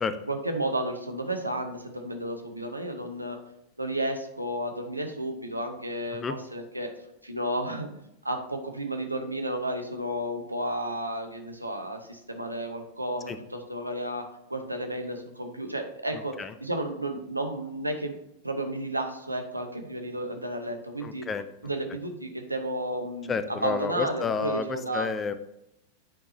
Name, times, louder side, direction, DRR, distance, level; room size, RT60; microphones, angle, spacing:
voice 1, 0.3-3.4 3.8-6.9 7.2-7.9 8.2-14.2 14.5-16.3 16.6-18.2 18.4-21.3 21.6-25.1, right 1 dB, 85° right, 5 dB, 0.9 m, -32 dB
voice 2, 16.1-16.5 21.0-21.4 23.3-25.3, left 5 dB, 20° left, 12 dB, 0.5 m, -30 dB
9.1 x 4.7 x 2.7 m, 0.83 s
figure-of-eight pair, 90°, 0 cm